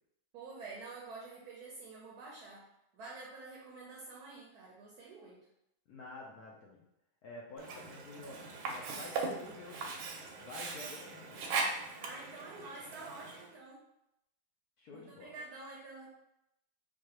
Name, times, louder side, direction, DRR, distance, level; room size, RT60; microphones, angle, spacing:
voice 1, 0.3-2.7 2.9-5.5 12.0-13.8 14.9-16.1, right 3 dB, 70° right, -3 dB, 1.0 m, -48 dB
voice 2, 5.9-6.8 7.2-10.0 10.4-11.5 14.8-15.4, left 2 dB, 75° left, -3 dB, 0.9 m, -49 dB
Sink (filling or washing), 7.6-13.5, right 3 dB, 85° right, 1.4 m, -39 dB
4.7 x 2.3 x 2.9 m, 0.84 s
omnidirectional pair, 2.1 m